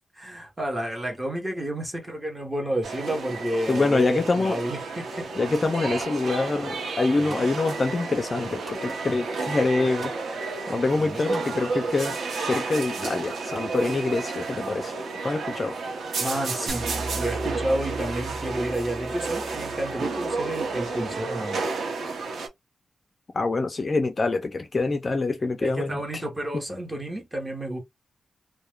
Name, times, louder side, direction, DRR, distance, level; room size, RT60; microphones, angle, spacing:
voice 1, 0.1-5.3 7.2-7.5 10.9-11.2 16.2-21.6 25.6-27.8, right 1 dB, 15° right, 0.8 m, -31 dB
sound 1, 2.8-22.5, right 3 dB, 85° right, 0.7 m, -31 dB
voice 2, 3.7-4.6 5.4-10.1 10.7-14.9 15.2-15.7 23.3-26.2 26.7-26.8, left 3 dB, 30° left, 0.4 m, -25 dB
sound 2, 5.7-6.2 6.7-7.5 7.9-8.8 9.4-9.5 9.7-10.2 10.5-11.5 11.8-11.9, right 2 dB, 30° right, 1.2 m, -44 dB
sound 3, 16.7-21.1, right 3 dB, 45° right, 0.6 m, -38 dB
2.2 x 2.1 x 3.0 m
wide cardioid pair, 150°, 0 cm